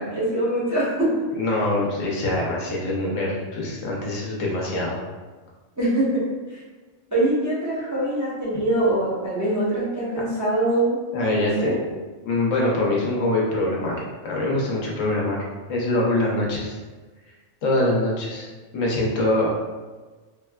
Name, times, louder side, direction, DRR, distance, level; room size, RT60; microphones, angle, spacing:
voice 1, 0.0-1.2 5.8-6.6 7.1-11.0 11.3-11.7, right 1 dB, 20° right, -10 dB, 0.6 m, -23 dB
voice 2, 1.4-5.0 11.1-11.8 12.2-14.0 14.2-15.4 15.7-16.8 17.6-18.5 18.7-19.5, left 2 dB, 85° left, -3 dB, 1.1 m, -24 dB
3.6 x 2.2 x 2.2 m, 1.3 s
omnidirectional pair, 1.3 m